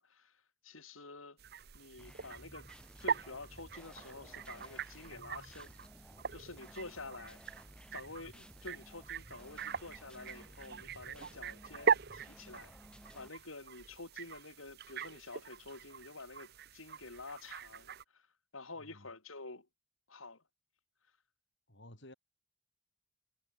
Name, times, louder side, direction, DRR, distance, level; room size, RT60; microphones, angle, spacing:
voice 1, 0.0-1.4 1.7-2.7 3.0-5.7 6.3-7.4 7.9-12.8 13.1-18.2 18.5-19.7 20.1-20.4, left 3 dB, 80° left, 4.8 m, -49 dB
sound 1, 1.4-18.0, right 6 dB, 50° right, 0.9 m, -41 dB
sound 2, 2.0-13.3, equal, 5° left, 3.7 m, -56 dB
voice 2, 21.7-22.1, left 1 dB, 60° left, 5.4 m, -54 dB
head